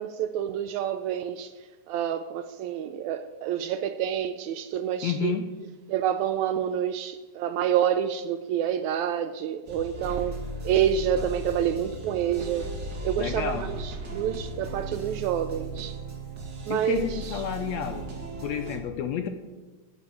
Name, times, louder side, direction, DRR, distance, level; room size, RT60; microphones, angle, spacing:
voice 1, 0.0-1.5 1.9-5.4 5.9-10.4 10.7-12.7 13.0-16.0 16.7-17.4, right 9 dB, 75° right, 10 dB, 1.8 m, -28 dB
voice 2, 5.0-5.5 13.2-13.7 16.7-18.1 18.4-19.3, left 9 dB, 75° left, 7 dB, 1.7 m, -30 dB
sound 1, 9.7-18.8, right 2 dB, 35° right, 2.3 m, -36 dB
11.5 x 8.7 x 8.8 m, 1.3 s
omnidirectional pair, 3.7 m